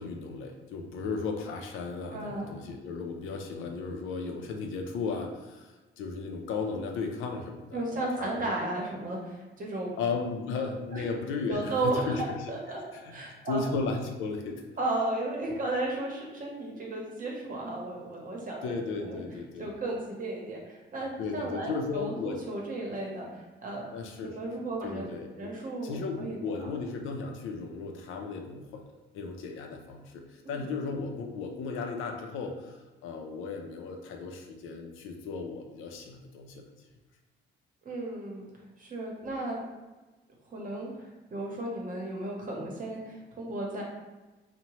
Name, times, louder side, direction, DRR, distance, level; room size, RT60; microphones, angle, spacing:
voice 1, 0.0-8.5 10.0-12.2 13.5-14.6 18.6-19.7 21.2-22.4 23.9-24.3 24.8-25.5 25.8-28.8 29.1-32.8 33.0-36.6, left 4 dB, 90° left, 3 dB, 0.5 m, -35 dB
voice 2, 2.1-2.5 7.7-9.9 10.9-11.0 11.5-12.2 12.5-12.8 13.1-13.6 14.8-19.2 19.6-23.8 24.2-25.1 25.4-26.7 30.4-30.7 37.8-38.5 38.8-39.6 40.5-43.8, right 2 dB, 45° right, -2 dB, 0.8 m, -34 dB
2.8 x 2.1 x 3.0 m, 1.2 s
cardioid pair, 90°, 20 cm